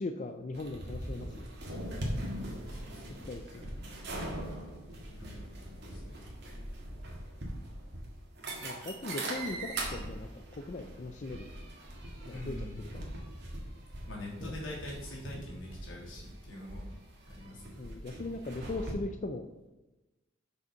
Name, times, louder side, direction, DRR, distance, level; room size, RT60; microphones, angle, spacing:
voice 1, 0.0-1.5 3.3-3.7 8.6-11.5 12.3-13.1 14.4-14.6 17.8-19.5, left 2 dB, 40° left, 7 dB, 0.4 m, -39 dB
sound 1, 0.5-18.9, right 1 dB, 60° right, 1.8 m, -41 dB
voice 2, 2.4-3.3 5.1-6.2 12.3-12.8 14.1-16.8 17.3-17.8, left 1 dB, 80° left, -4 dB, 3.0 m, -45 dB
6.6 x 5.1 x 5.6 m, 1.1 s
head